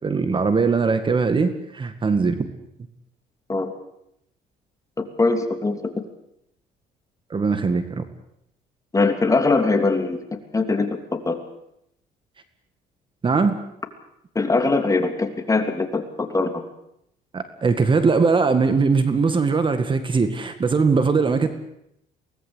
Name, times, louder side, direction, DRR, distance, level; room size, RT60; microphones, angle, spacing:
voice 1, 0.0-2.5 7.3-8.0 13.2-13.6 17.3-21.5, right 4 dB, 30° right, 9 dB, 2.0 m, -20 dB
voice 2, 5.0-5.9 8.9-11.4 14.3-16.6, left 3 dB, 20° left, 6 dB, 3.0 m, -22 dB
23.5 x 19.0 x 8.2 m, 0.77 s
cardioid pair, 110°, 17 cm